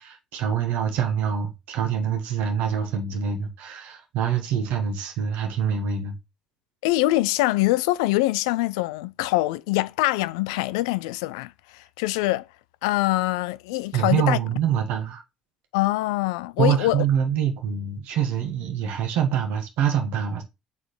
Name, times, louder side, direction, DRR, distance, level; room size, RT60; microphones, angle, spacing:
voice 1, 0.0-6.2 13.9-15.2 16.6-20.4, right 8 dB, 70° right, 1.3 m, -25 dB
voice 2, 6.8-12.5 12.8-14.4 15.7-17.0, left 18 dB, 80° left, 0.3 m, -24 dB
7.4 x 4.1 x 3.1 m
hypercardioid pair, 50°, 3 cm